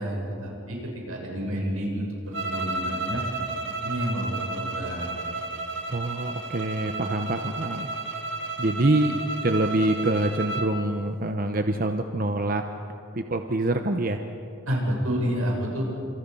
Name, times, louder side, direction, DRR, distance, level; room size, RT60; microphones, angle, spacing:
voice 1, 0.0-3.2 3.8-5.2 14.7-15.9, equal, 85° right, -1 dB, 7.7 m, -29 dB
sound 1, 2.3-10.7, right 3 dB, 60° right, 2.3 m, -32 dB
voice 2, 5.9-7.9 8.6-12.7 13.1-14.2, right 1 dB, 40° right, 6 dB, 0.9 m, -25 dB
30.0 x 27.5 x 5.6 m, 2.7 s
head